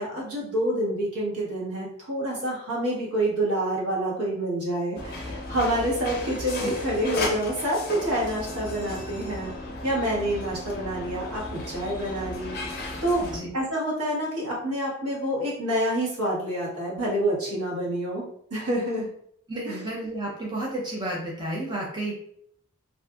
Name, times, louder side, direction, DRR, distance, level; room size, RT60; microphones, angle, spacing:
voice 1, 0.0-9.5 9.8-13.2 13.5-18.2 18.5-19.1 19.7-19.8, right 1 dB, 85° right, -5 dB, 1.1 m, -27 dB
sound 1, 4.9-13.4, left 2 dB, 40° left, 0.5 m, -35 dB
voice 2, 13.2-13.5 19.5-22.1, right 1 dB, 20° right, -3 dB, 0.4 m, -31 dB
2.5 x 2.4 x 2.3 m, 0.68 s
head